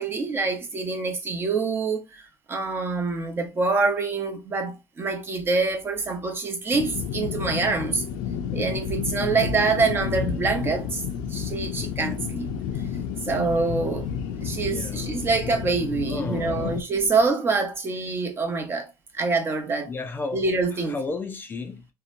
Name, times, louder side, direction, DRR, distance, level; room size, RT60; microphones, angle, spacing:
voice 1, 0.0-8.0 8.5-11.0 11.3-12.5 13.2-19.9 20.3-21.0, right 4 dB, 30° right, 0.7 m, -26 dB
sound 1, 6.7-16.8, left 8 dB, 85° left, 0.5 m, -31 dB
voice 2, 14.6-15.1 16.1-16.8 19.9-20.4 20.9-21.9, left 3 dB, 25° left, 0.4 m, -33 dB
2.8 x 2.1 x 2.5 m
cardioid pair, 115°, 8 cm